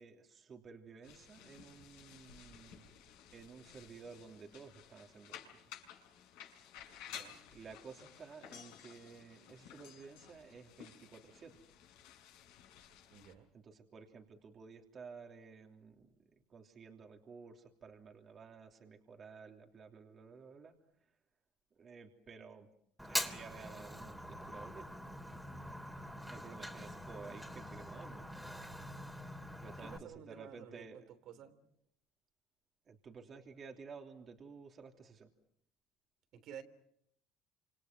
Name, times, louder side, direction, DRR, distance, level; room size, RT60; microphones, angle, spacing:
voice 1, 0.0-2.8 3.3-5.6 7.5-11.6 13.5-16.1 16.5-20.7 21.8-22.7 23.0-24.9 26.3-28.3 29.6-31.0 32.9-35.3, right 5 dB, 40° right, 3 dB, 3.1 m, -53 dB
sound 1, 1.0-13.3, left 9 dB, 80° left, 6.1 m, -55 dB
voice 2, 7.1-7.4 13.1-13.5 29.7-31.5 36.3-36.6, right 9 dB, 65° right, 10 dB, 3.3 m, -52 dB
Fire, 23.0-30.0, equal, ahead, 3.2 m, -44 dB
28.5 x 27.5 x 6.0 m, 0.71 s
supercardioid pair, 80°, 0 cm